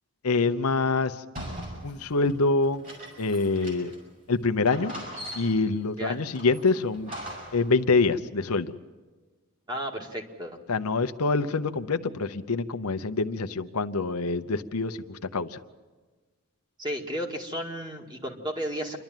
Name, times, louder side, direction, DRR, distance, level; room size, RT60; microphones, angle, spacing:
voice 1, 0.2-1.2 1.8-2.8 3.2-3.9 4.3-4.9 5.3-7.1 7.5-8.7 10.7-15.6, left 3 dB, 85° left, 9 dB, 0.9 m, -25 dB
sound 1, 1.4-4.1 4.3-4.4 4.7-5.8 6.4-7.7, equal, 40° right, 6.1 m, -40 dB
voice 2, 9.7-10.6 16.8-19.0, equal, 20° right, 2 dB, 2.1 m, -33 dB
28.0 x 12.0 x 9.1 m, 1.3 s
head